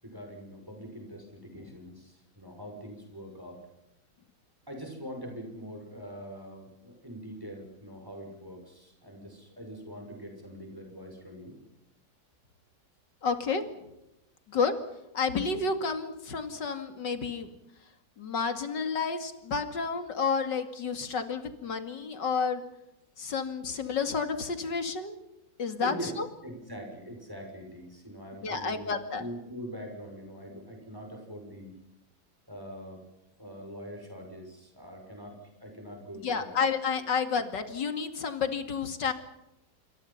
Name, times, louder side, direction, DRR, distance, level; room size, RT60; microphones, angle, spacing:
voice 1, 0.0-3.6 4.7-11.6 25.8-26.1 26.4-31.8 32.5-33.0 33.4-36.6 37.3-37.4, equal, 10° right, 3 dB, 6.3 m, -43 dB
voice 2, 13.2-13.6 14.5-14.7 15.1-17.5 18.2-22.6 23.2-25.2 25.6-26.3 28.4-29.2 36.2-39.1, left 5 dB, 70° left, 8 dB, 3.0 m, -30 dB
27.5 x 24.5 x 5.7 m, 0.90 s
omnidirectional pair, 2.0 m